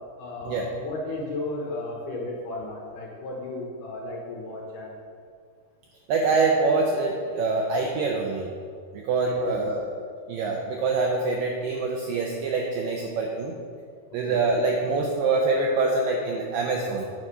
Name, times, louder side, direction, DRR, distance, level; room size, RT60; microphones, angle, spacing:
voice 1, 0.0-5.0 9.2-9.9 14.2-14.6, left 2 dB, 70° left, -2 dB, 2.1 m, -35 dB
voice 2, 6.1-8.5 8.9-9.8 10.3-13.5 14.1-17.0, right 3 dB, 80° right, 1 dB, 2.0 m, -25 dB
9.1 x 4.8 x 5.5 m, 2.2 s
omnidirectional pair, 4.6 m